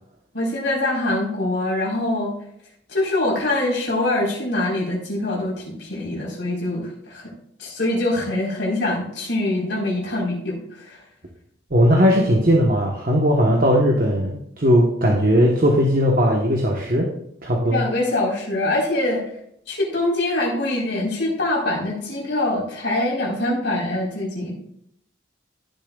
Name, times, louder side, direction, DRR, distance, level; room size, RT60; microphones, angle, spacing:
voice 1, 0.3-2.3 2.9-7.3 7.6-11.0 17.6-19.2 19.7-24.6, left 1 dB, 75° left, -4 dB, 4.3 m, -24 dB
voice 2, 11.7-17.1 17.4-17.8, equal, 50° right, -1 dB, 1.2 m, -18 dB
15.5 x 7.2 x 2.4 m, 0.71 s
head